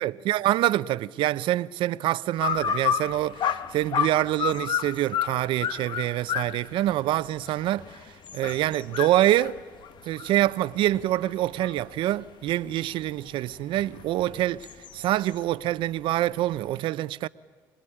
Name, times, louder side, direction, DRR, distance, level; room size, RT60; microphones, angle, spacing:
voice 1, 0.0-9.6 10.1-17.3, right 14 dB, 75° right, 0.8 m, -26 dB
sound 1, 2.4-12.0 12.5-15.4, left 8 dB, 60° left, 1.3 m, -31 dB
26.0 x 20.5 x 10.0 m
supercardioid pair, 70°, 9 cm